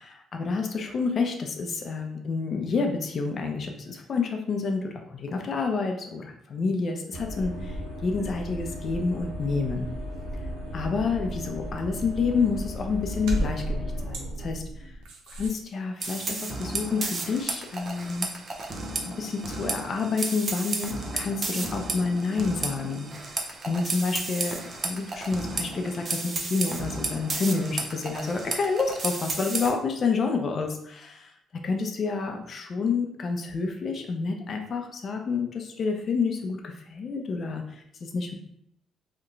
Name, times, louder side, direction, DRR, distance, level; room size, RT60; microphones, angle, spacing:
voice 1, 0.0-7.8 8.0-9.9 10.7-14.9 15.3-18.3 19.0-23.4 23.7-31.3 31.6-37.6 38.0-38.3, left 4 dB, 50° left, 3 dB, 0.5 m, -29 dB
sound 1, 7.1-15.5, equal, 80° right, 0.5 m, -34 dB
sound 2, 16.0-29.7, right 3 dB, 40° right, 0.6 m, -33 dB
2.9 x 2.1 x 3.8 m, 0.71 s
supercardioid pair, 80°, 0 cm